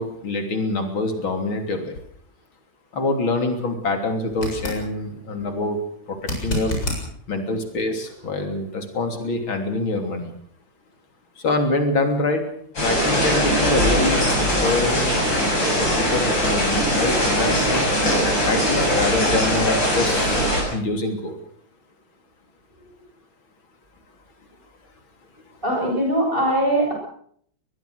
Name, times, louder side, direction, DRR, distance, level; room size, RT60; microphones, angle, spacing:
voice 1, 0.0-1.9 2.9-5.8 6.1-6.8 7.3-10.3 11.4-12.4 12.8-15.2 15.8-17.9 18.4-20.4 20.7-21.4, left 2 dB, 90° left, 6 dB, 4.0 m, -25 dB
sound 1, 4.3-4.8 6.2-7.0 10.0-10.1, left 2 dB, 45° left, 7.9 m, -27 dB
sound 2, 12.8-20.6, equal, 70° left, 8.6 m, -20 dB
voice 2, 25.6-26.9, right 1 dB, 25° right, 0 dB, 7.9 m, -21 dB
22.0 x 21.0 x 6.5 m, 0.62 s
omnidirectional pair, 2.1 m